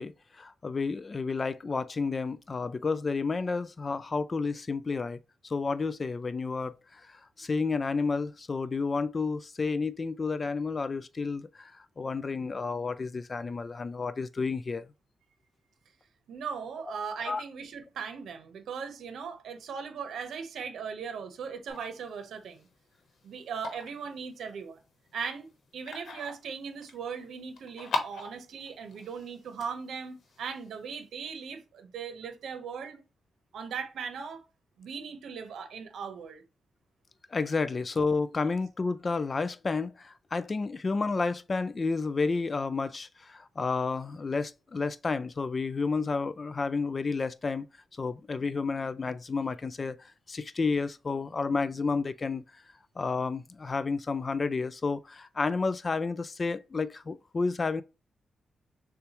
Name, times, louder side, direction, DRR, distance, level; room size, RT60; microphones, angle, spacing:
voice 1, 0.0-14.9 17.3-17.4 37.3-47.7 48.0-52.4 53.0-57.8, left 4 dB, 30° left, 0.3 m, -31 dB
voice 2, 16.3-22.7 23.2-24.8 25.1-25.5 25.7-33.0 33.5-34.5 34.8-36.4, right 6 dB, 80° right, 0.9 m, -38 dB
sound 1, 21.7-31.1, left 3 dB, 70° left, 1.0 m, -42 dB
6.8 x 2.3 x 3.0 m
wide cardioid pair, 135°, 0 cm